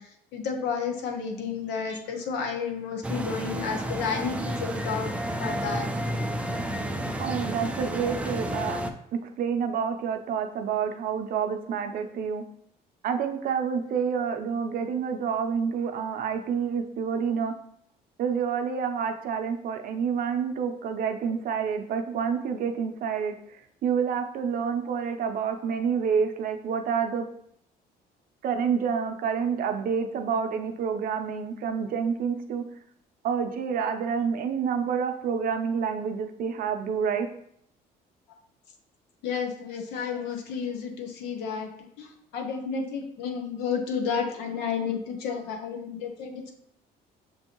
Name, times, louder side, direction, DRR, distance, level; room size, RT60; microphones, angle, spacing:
voice 1, 0.0-5.1 5.4-5.9 39.2-41.7 42.0-46.5, left 6 dB, 90° left, 4 dB, 0.8 m, -31 dB
sound 1, 3.0-8.9, right 1 dB, 5° right, 0.4 m, -31 dB
voice 2, 7.2-8.8 9.4-12.4 13.0-17.5 18.2-27.3 28.4-32.6 33.2-37.3, right 6 dB, 60° right, 6 dB, 0.5 m, -28 dB
6.2 x 2.6 x 2.9 m, 0.70 s
cardioid pair, 110°, 17 cm